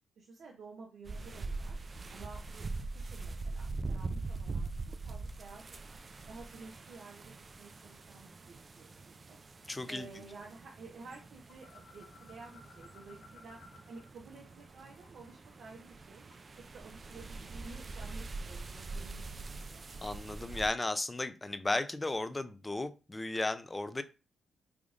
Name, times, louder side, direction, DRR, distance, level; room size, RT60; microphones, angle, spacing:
voice 1, 0.2-1.8 2.1-4.7 5.1-5.8 6.3-9.4 9.9-13.6 13.9-16.3 16.6-19.8, right 4 dB, 70° right, 0 dB, 0.7 m, -52 dB
sound 1, 1.1-20.7, right 3 dB, 40° right, 0.4 m, -43 dB
voice 2, 9.7-10.1 20.0-24.0, left 2 dB, 25° left, 11 dB, 0.5 m, -35 dB
sound 2, 11.5-14.1 14.4-16.7, left 4 dB, 85° left, 0.6 m, -59 dB
3.5 x 2.3 x 3.7 m, 0.30 s
supercardioid pair, 55°, 0 cm